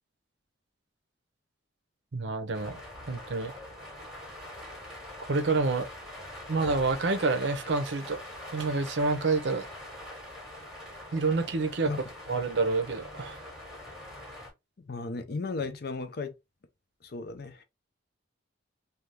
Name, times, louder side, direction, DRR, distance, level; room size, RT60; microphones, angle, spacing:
voice 1, 2.1-2.8 3.1-3.5 5.3-5.9 6.5-8.2 8.5-9.6 11.1-11.9 12.3-13.4, right 3 dB, 65° right, 0.6 m, -28 dB
sound 1, 2.5-14.5, left 1 dB, ahead, 1.0 m, -44 dB
voice 2, 14.9-16.4 17.0-17.6, left 3 dB, 50° left, 0.5 m, -35 dB
2.7 x 2.3 x 3.2 m
head